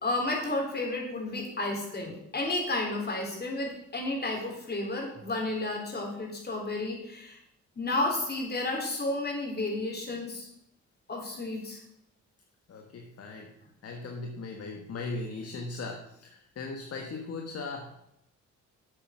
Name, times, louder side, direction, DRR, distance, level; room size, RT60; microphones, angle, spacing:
voice 1, 0.0-7.4 7.8-10.5 11.1-11.8, left 2 dB, 35° left, 0 dB, 3.8 m, -32 dB
voice 2, 12.7-13.5 13.8-18.2, left 3 dB, 55° left, 3 dB, 1.4 m, -38 dB
8.1 x 8.1 x 6.0 m, 0.80 s
cardioid pair, 80°, 29 cm